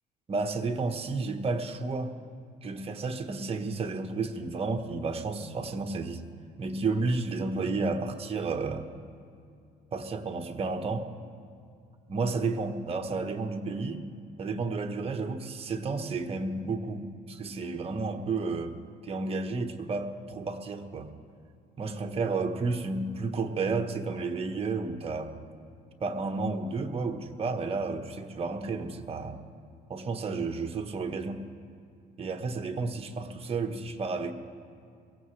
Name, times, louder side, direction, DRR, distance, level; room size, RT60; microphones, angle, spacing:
voice 1, 0.3-2.1 2.6-6.2 6.6-8.9 9.9-11.1 12.1-14.1 14.4-18.7 19.0-21.1 21.8-25.3 26.0-29.4 29.9-31.5 32.2-34.3, right 3 dB, 35° right, 5 dB, 1.2 m, -32 dB
23.0 x 16.5 x 3.3 m, 2.4 s
cardioid pair, 110°, 17 cm